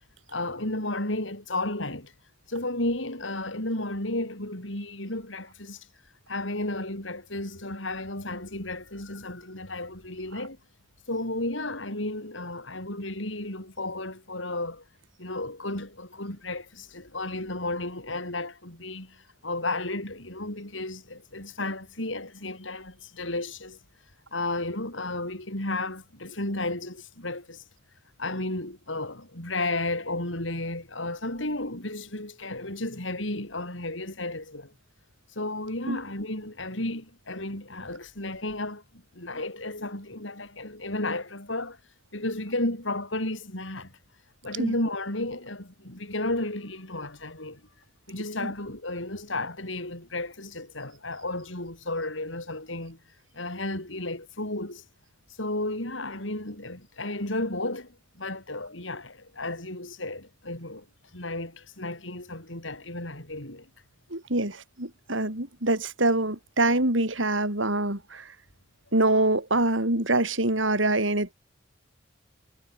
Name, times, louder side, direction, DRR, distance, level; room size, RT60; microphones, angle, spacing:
voice 1, 0.3-2.1 2.5-5.9 6.3-10.6 11.1-14.8 15.2-23.8 24.3-27.6 28.2-34.7 35.3-41.8 42.1-43.9 44.4-47.6 48.1-53.0 53.3-54.8 55.4-60.9 61.1-63.7 69.1-69.2, left 2 dB, 80° left, 7.9 m, -33 dB
voice 2, 64.1-68.3 68.9-71.3, right 2 dB, 85° right, 7.1 m, -25 dB
head